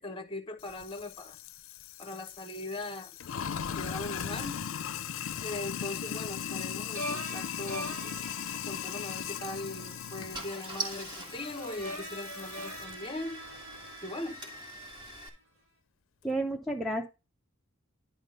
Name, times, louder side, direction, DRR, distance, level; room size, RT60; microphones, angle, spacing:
voice 1, 0.0-1.4 2.0-3.1 3.8-4.6 5.4-8.3 8.7-13.4 14.0-14.4, left 2 dB, 25° left, 1.0 m, -40 dB
Sink (filling or washing), 0.6-12.9, left 8 dB, 70° left, 0.5 m, -38 dB
sound 1, 6.9-15.1, equal, 60° right, 5.0 m, -43 dB
Car / Engine starting, 9.3-9.4 10.0-10.1 10.3-15.3, right 1 dB, 20° right, 2.0 m, -43 dB
voice 2, 16.2-17.1, right 1 dB, ahead, 0.5 m, -31 dB
10.5 x 3.6 x 5.2 m
head